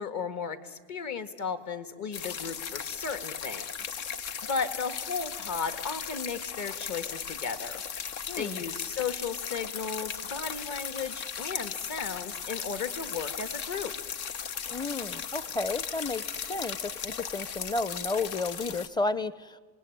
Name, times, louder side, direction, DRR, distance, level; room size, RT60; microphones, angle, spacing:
voice 1, 0.0-4.0 4.5-7.8 8.4-13.9, left 5 dB, 45° left, 10 dB, 1.8 m, -35 dB
sound 1, 2.1-18.9, left 7 dB, 75° left, 1.3 m, -37 dB
voice 2, 8.3-8.6 14.7-16.2 16.5-19.6, left 3 dB, 10° left, 17 dB, 0.7 m, -32 dB
27.5 x 19.5 x 9.3 m, 1.5 s
cardioid pair, 120°, 40 cm